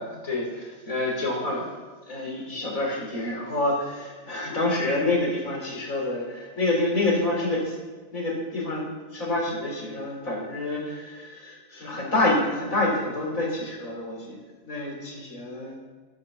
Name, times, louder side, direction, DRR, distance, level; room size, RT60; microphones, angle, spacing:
voice 1, 0.0-1.7 2.1-7.8 8.1-14.4 14.7-15.8, left 2 dB, 80° left, -2 dB, 4.3 m, -27 dB
13.0 x 9.8 x 6.8 m, 1.4 s
omnidirectional pair, 1.4 m